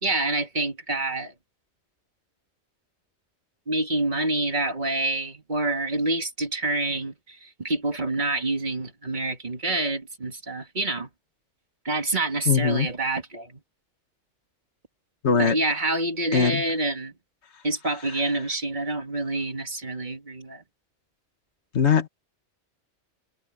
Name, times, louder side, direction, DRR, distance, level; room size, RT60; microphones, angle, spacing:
voice 1, 0.0-1.3 3.7-11.1 11.8-13.6 15.3-17.1 17.6-20.6, right 2 dB, 40° right, 2.2 m, -27 dB
voice 2, 12.5-12.9 15.2-15.6 16.3-16.6 21.7-22.1, left 6 dB, 70° left, 1.7 m, -21 dB
omnidirectional pair, 1.2 m